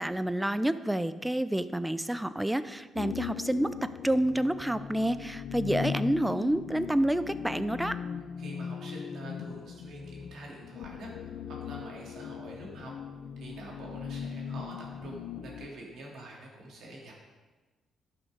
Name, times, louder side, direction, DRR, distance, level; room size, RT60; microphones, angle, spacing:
voice 1, 0.0-8.0, right 1 dB, 5° right, 13 dB, 0.5 m, -29 dB
sound 1, 3.0-15.7, left 7 dB, 75° left, 0.5 m, -39 dB
voice 2, 8.4-12.9 13.4-17.1, right 1 dB, 70° right, -2 dB, 3.0 m, -46 dB
11.5 x 6.4 x 5.2 m, 1.3 s
cardioid pair, 90°, 0 cm